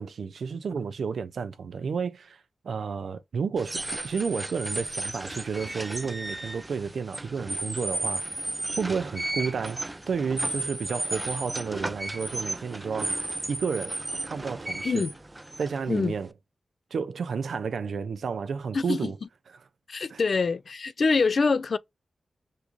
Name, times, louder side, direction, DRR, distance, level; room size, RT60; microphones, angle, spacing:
voice 1, 0.0-8.4 8.8-13.1 13.5-14.0 14.2-15.1 15.6-16.3 16.9-19.2 20.1-20.2, right 5 dB, 90° right, 0.4 m, -31 dB
sound 1, 3.6-16.3, right 2 dB, 20° right, 0.4 m, -34 dB
voice 2, 18.7-19.1 19.9-21.8, left 4 dB, 60° left, 0.3 m, -25 dB
3.5 x 2.5 x 3.0 m
wide cardioid pair, 100°, 0 cm